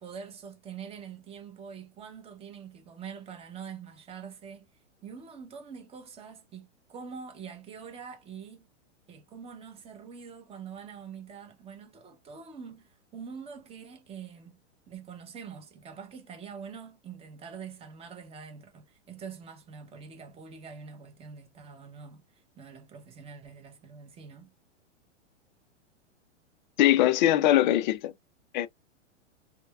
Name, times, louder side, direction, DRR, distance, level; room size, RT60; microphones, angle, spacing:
voice 1, 0.0-4.7 5.0-8.7 9.1-14.6 14.9-24.5, right 6 dB, 15° right, 0.8 m, -45 dB
voice 2, 26.8-28.1 28.5-28.7, left 13 dB, 40° left, 0.4 m, -22 dB
3.1 x 2.2 x 2.2 m
hypercardioid pair, 115°, 36 cm